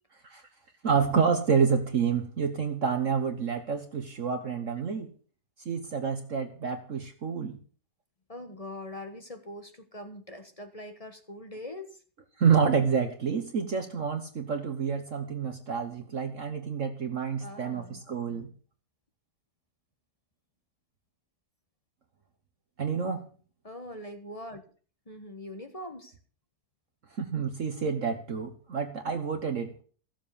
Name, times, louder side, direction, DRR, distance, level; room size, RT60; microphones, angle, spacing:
voice 1, 0.8-5.1 5.6-7.6 12.4-18.5 22.8-23.3 27.2-29.7, right 6 dB, 50° right, 6 dB, 1.4 m, -28 dB
voice 2, 8.3-12.0 17.4-18.0 23.6-24.6 25.0-26.2, left 1 dB, 25° left, 7 dB, 1.3 m, -42 dB
15.0 x 7.4 x 7.0 m, 0.42 s
omnidirectional pair, 1.8 m